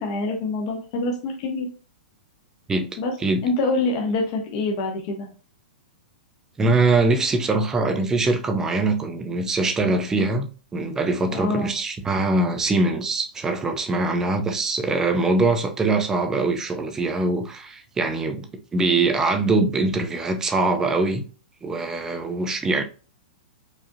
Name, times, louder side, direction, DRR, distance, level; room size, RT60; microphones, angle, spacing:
voice 1, 0.0-1.7 3.0-3.1 3.4-5.3 11.3-11.7, left 2 dB, 40° left, 1.0 m, -25 dB
voice 2, 6.6-18.5 18.7-21.2 21.6-22.8, right 3 dB, 10° right, 0.5 m, -23 dB
4.9 x 2.7 x 2.6 m
hypercardioid pair, 160°, 5 cm